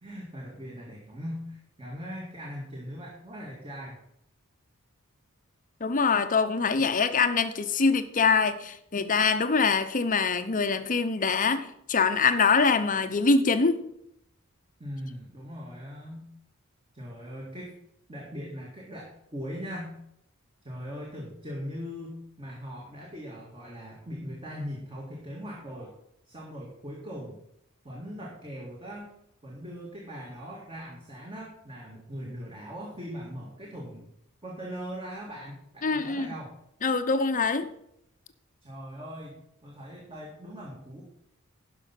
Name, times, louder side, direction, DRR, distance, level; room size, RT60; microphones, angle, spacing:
voice 1, 0.0-4.0 14.8-16.3 16.9-17.7 18.1-19.9 20.6-25.9 26.3-27.4 27.8-29.1 29.4-34.1 34.4-36.5 38.6-41.0, equal, 25° right, 2.0 m, -40 dB
voice 2, 5.8-13.8 35.8-36.3 36.8-37.7, left 4 dB, 40° left, 0.8 m, -24 dB
12.0 x 5.6 x 5.8 m
head